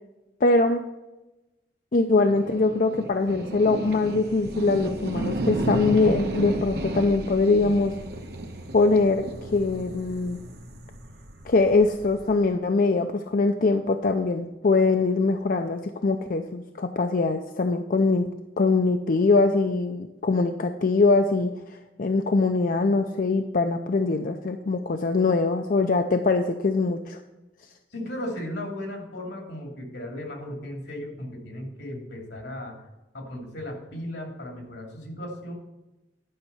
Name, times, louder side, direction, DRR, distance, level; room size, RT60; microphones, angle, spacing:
voice 1, 0.4-0.8 1.9-7.9 8.7-10.4 11.5-18.3 18.6-21.5 22.0-27.2, left 3 dB, 50° left, 6 dB, 0.5 m, -22 dB
sound 1, 2.1-12.5, right 1 dB, 65° right, 1.1 m, -33 dB
voice 2, 27.9-32.8 33.1-35.5, left 1 dB, 85° left, 1 dB, 2.7 m, -36 dB
11.0 x 5.5 x 5.6 m, 1.0 s
head